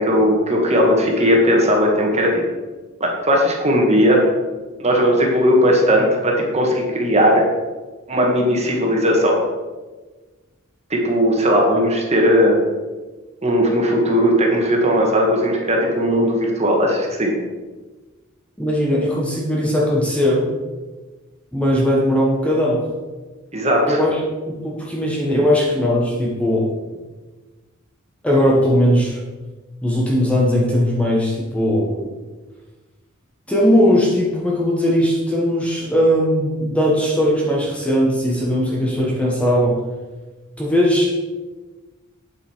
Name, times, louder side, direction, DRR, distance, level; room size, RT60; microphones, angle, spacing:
voice 1, 0.0-2.4 3.0-4.2 4.8-7.4 8.1-9.4 10.9-12.6 13.4-17.3 23.5-24.0, equal, 30° right, 0 dB, 1.9 m, -17 dB
voice 2, 18.6-20.5 21.5-22.8 23.9-24.2 24.5-26.7 28.2-29.2 29.8-32.0 33.5-39.8 40.6-41.1, equal, 5° left, -3 dB, 1.4 m, -18 dB
8.6 x 8.1 x 4.6 m, 1.3 s
head